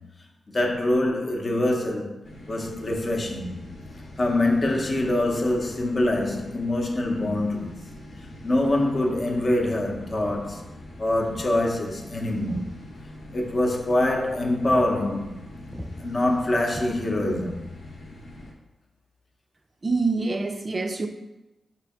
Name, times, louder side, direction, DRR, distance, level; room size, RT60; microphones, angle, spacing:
voice 1, 0.5-3.6 4.2-7.7 8.4-10.6 11.0-12.8 13.3-15.4 16.0-17.6, left 1 dB, 40° left, 0.7 m, -24 dB
sound 1, 2.2-18.5, left 1 dB, 85° left, 0.8 m, -43 dB
Walk footsteps, 10.2-10.5 11.3-11.6 11.9-13.3 13.6-13.8 14.2-14.4 14.7-14.9 15.2-15.4 15.7-16.0 16.7-17.4, equal, 20° left, 0.9 m, -41 dB
voice 2, 19.8-21.1, right 3 dB, 35° right, 0.3 m, -25 dB
5.0 x 2.8 x 3.4 m
wide cardioid pair, 90°, 0 cm